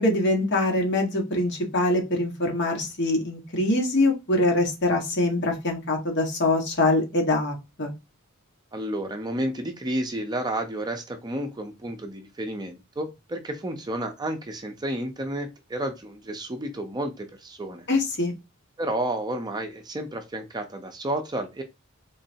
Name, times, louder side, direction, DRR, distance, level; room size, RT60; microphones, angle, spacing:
voice 1, 0.0-7.9 17.9-18.3, left 2 dB, 55° left, 2 dB, 1.4 m, -24 dB
voice 2, 8.7-17.9 18.8-21.6, right 1 dB, 20° right, 5 dB, 0.5 m, -31 dB
3.7 x 3.2 x 2.7 m, 0.24 s
head